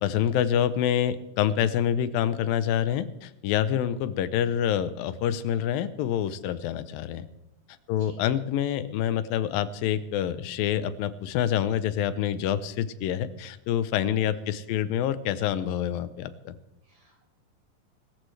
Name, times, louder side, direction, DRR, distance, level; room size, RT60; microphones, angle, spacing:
voice 1, 0.0-7.2 7.9-16.6, left 10 dB, 85° left, 13 dB, 2.5 m, -27 dB
voice 2, 7.9-8.3 14.1-14.6 16.8-17.3, right 1 dB, 65° right, -4 dB, 8.9 m, -53 dB
24.5 x 14.0 x 3.3 m, 0.87 s
omnidirectional pair, 4.0 m